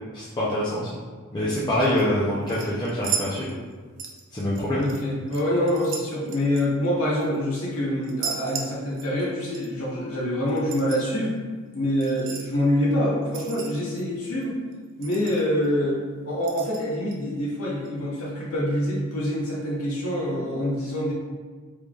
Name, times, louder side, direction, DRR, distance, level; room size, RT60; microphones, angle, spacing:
voice 1, 0.1-0.9 1.3-3.5 4.3-4.8, left 1 dB, 20° left, -9 dB, 0.5 m, -25 dB
sound 1, 1.8-2.0 2.5-3.7 4.0-5.0 5.3-7.4 8.0-9.3 9.5-9.7 10.5-11.0 12.0-12.5 13.3-14.0 14.4-14.5 14.7-14.8 15.0-15.7 16.4-17.2 17.9-18.0, right 6 dB, 60° right, 0.4 m, -35 dB
voice 2, 4.7-11.3 11.7-14.6 15.0-21.1, equal, 90° left, -4 dB, 0.9 m, -26 dB
3.6 x 3.2 x 2.4 m, 1.5 s
head